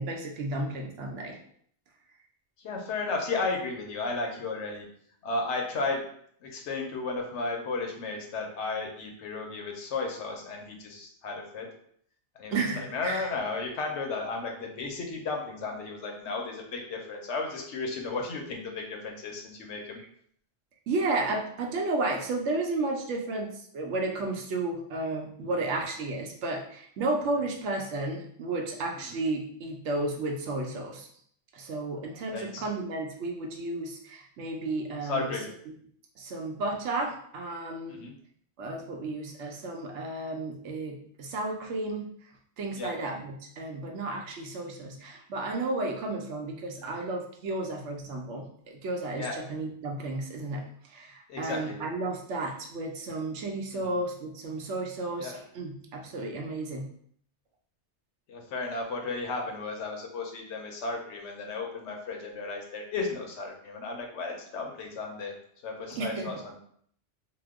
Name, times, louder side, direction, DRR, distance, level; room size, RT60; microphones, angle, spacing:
voice 1, 0.0-1.4 12.5-13.3 20.9-31.1 31.5-35.3 36.2-38.0 38.6-42.1 42.6-56.9 65.9-66.3, right 2 dB, 85° right, 2 dB, 0.9 m, -33 dB
voice 2, 2.6-4.9 5.2-6.0 6.4-11.7 12.4-20.0 29.1-29.2 32.3-32.6 35.1-35.5 37.9-38.1 42.8-42.9 49.1-49.3 51.3-51.8 53.7-53.9 55.2-55.4 58.3-65.3 65.6-66.6, left 3 dB, 80° left, 1 dB, 1.0 m, -34 dB
2.9 x 2.0 x 3.5 m, 0.64 s
omnidirectional pair, 1.2 m